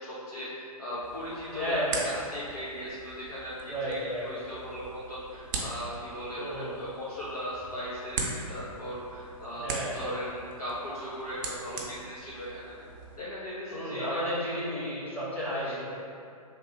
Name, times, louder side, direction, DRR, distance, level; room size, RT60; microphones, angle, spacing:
voice 1, 0.0-1.8 2.0-3.5 3.8-4.0 4.2-9.7 9.9-12.7 13.2-14.2 14.4-14.6 15.6-15.7, equal, 80° left, -11 dB, 1.4 m, -38 dB
sound 1, 1.0-13.2, right 3 dB, 35° right, 0.5 m, -41 dB
voice 2, 1.5-2.1 3.7-4.3 6.4-6.9 9.6-10.1 13.7-15.9, equal, 5° left, -11 dB, 0.8 m, -32 dB
3.3 x 2.5 x 4.3 m, 2.4 s
figure-of-eight pair, 125°, 19 cm